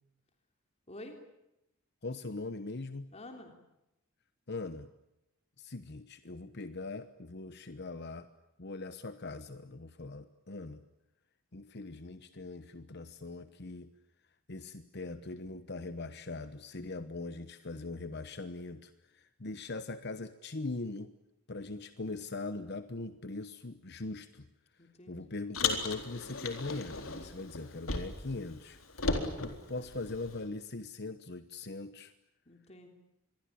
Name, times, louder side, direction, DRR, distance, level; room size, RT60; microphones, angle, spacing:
voice 1, 0.9-1.2 3.1-3.5 24.8-25.4 32.5-32.9, left 1 dB, 30° left, 4 dB, 3.4 m, -49 dB
voice 2, 2.0-3.1 4.5-4.9 5.6-8.3 8.6-10.8 11.5-13.9 14.5-21.1 21.5-24.5 25.1-28.8 29.4-32.1, left 3 dB, 55° left, 11 dB, 1.1 m, -41 dB
Car, 25.5-28.4 28.6-30.4, left 3 dB, 80° left, 4.0 m, -36 dB
27.0 x 22.5 x 8.6 m, 0.89 s
head